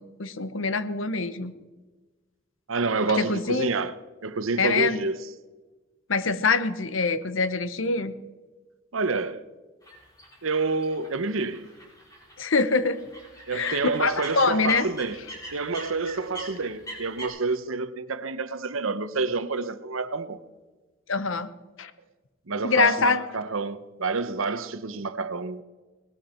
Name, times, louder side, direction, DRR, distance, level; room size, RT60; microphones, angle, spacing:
voice 1, 0.0-1.5 3.2-3.7 4.6-5.0 6.1-8.1 12.4-13.0 13.5-14.9 21.1-21.5 21.8-21.9 22.6-23.2, left 4 dB, 75° left, 1.0 m, -24 dB
voice 2, 2.7-3.9 4.2-5.3 8.9-9.4 10.4-11.6 13.5-15.2 15.5-20.4 22.5-25.6, right 4 dB, 85° right, 0.9 m, -28 dB
sound 1, 9.8-17.3, right 1 dB, 15° left, 4.9 m, -44 dB
19.0 x 13.0 x 4.5 m
head